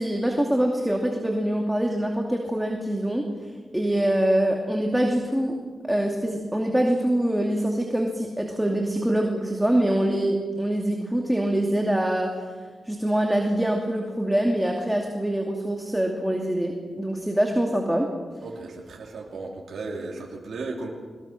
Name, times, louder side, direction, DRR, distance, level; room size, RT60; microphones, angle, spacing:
voice 1, 0.0-3.2 3.7-5.5 5.8-12.3 12.9-18.1, right 1 dB, 5° right, 1 dB, 2.6 m, -24 dB
voice 2, 18.4-20.9, right 3 dB, 75° right, -2 dB, 3.5 m, -35 dB
23.0 x 20.5 x 6.2 m, 1.5 s
cardioid pair, 80°, 0 cm